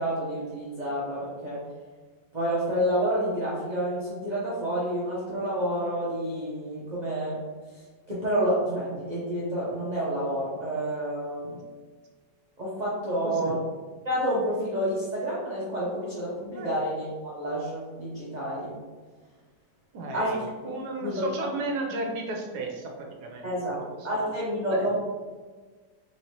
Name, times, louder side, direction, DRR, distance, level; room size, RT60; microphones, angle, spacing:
voice 1, 0.0-1.6 2.3-7.4 8.1-11.6 12.6-13.6 14.0-18.7 20.1-20.7 21.0-21.3 23.4-24.9, equal, 50° right, -7 dB, 0.5 m, -29 dB
voice 2, 19.9-24.1 24.7-24.9, right 2 dB, 70° right, 0 dB, 1.2 m, -34 dB
4.1 x 3.1 x 2.8 m, 1.4 s
omnidirectional pair, 1.9 m